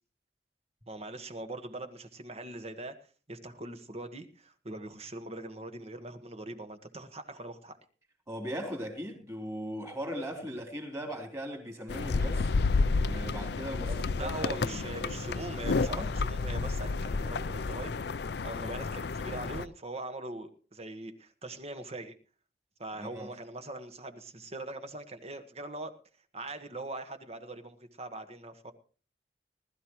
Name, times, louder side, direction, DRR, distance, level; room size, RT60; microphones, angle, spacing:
voice 1, 0.9-3.0 3.3-7.8 13.9-17.9 18.4-22.2 22.8-25.9 26.3-28.7, right 2 dB, 35° right, 1.5 m, -42 dB
voice 2, 8.3-12.5 13.0-15.3 15.9-16.1 23.0-23.3, equal, 20° right, 3.5 m, -39 dB
sound 1, 11.9-19.6, left 3 dB, 70° left, 0.5 m, -31 dB
20.0 x 13.0 x 3.1 m
head